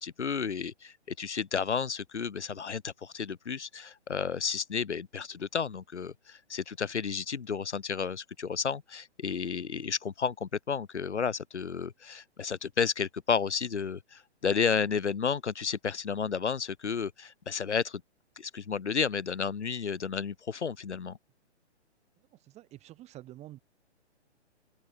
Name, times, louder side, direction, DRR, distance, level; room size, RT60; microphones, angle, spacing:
voice 1, 0.0-18.0 18.4-21.2, left 6 dB, 80° left, 2.0 m, -32 dB
voice 2, 22.3-23.6, right 15 dB, 20° right, 2.7 m, -48 dB
open air
hypercardioid pair, 135°, 34 cm